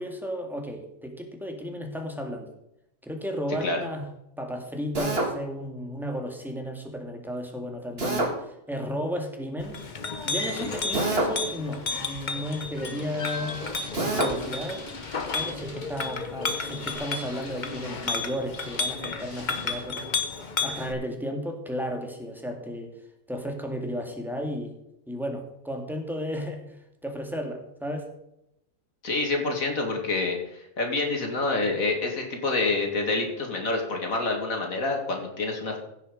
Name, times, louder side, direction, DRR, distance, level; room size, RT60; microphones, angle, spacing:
voice 1, 0.0-2.5 3.0-4.1 4.4-9.8 10.2-13.6 14.0-14.9 15.3-20.1 20.6-22.9 23.3-24.7 25.1-28.1, equal, ahead, 2 dB, 1.9 m, -34 dB
Drill, 4.9-5.3 8.0-8.3 10.9-11.4 13.9-14.3, right 2 dB, 45° right, 2.1 m, -26 dB
Chink clink, 9.6-20.9, left 4 dB, 35° left, 1.0 m, -32 dB
sound 1, 10.2-20.4, left 2 dB, 60° left, 2.3 m, -46 dB
voice 2, 29.0-35.8, left 3 dB, 75° left, 2 dB, 2.6 m, -27 dB
16.0 x 6.4 x 5.2 m, 0.82 s
omnidirectional pair, 1.4 m